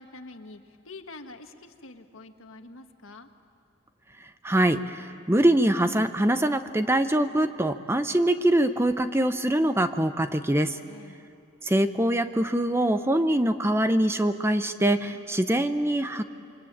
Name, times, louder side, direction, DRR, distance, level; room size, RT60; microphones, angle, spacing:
voice 1, 0.0-3.3 10.8-11.2 15.1-15.3, left 2 dB, 75° left, 6 dB, 1.6 m, -46 dB
voice 2, 4.4-10.8 11.6-16.2, right 1 dB, 10° right, 9 dB, 0.7 m, -23 dB
27.5 x 24.5 x 8.7 m, 2.6 s
head